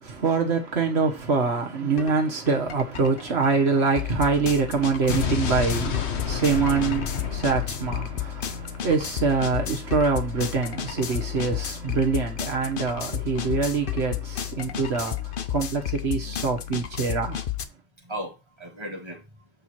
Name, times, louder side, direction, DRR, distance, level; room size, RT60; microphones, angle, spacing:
voice 1, 0.0-17.4, right 4 dB, 80° right, 1.6 m, -25 dB
sound 1, 2.0-2.1 2.5-17.6, left 11 dB, 55° left, 0.9 m, -32 dB
Explosion, 5.1-9.2, left 7 dB, 85° left, 1.3 m, -30 dB
voice 2, 16.2-16.8 18.0-19.5, equal, 25° right, 2.3 m, -39 dB
7.7 x 4.7 x 4.3 m
omnidirectional pair, 1.1 m